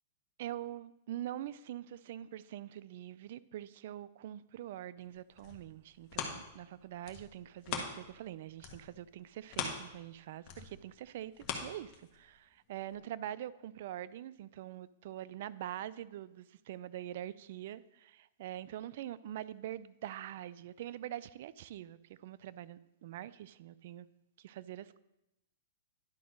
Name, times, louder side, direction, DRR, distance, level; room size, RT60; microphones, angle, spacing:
voice 1, 0.4-24.1 24.4-25.0, right 12 dB, 60° right, 17 dB, 0.3 m, -44 dB
sound 1, 5.1-8.3 8.6-12.4 12.9-13.0, left 6 dB, 40° left, 1.4 m, -42 dB
10.5 x 3.9 x 6.3 m, 0.90 s
hypercardioid pair, 140°, 0 cm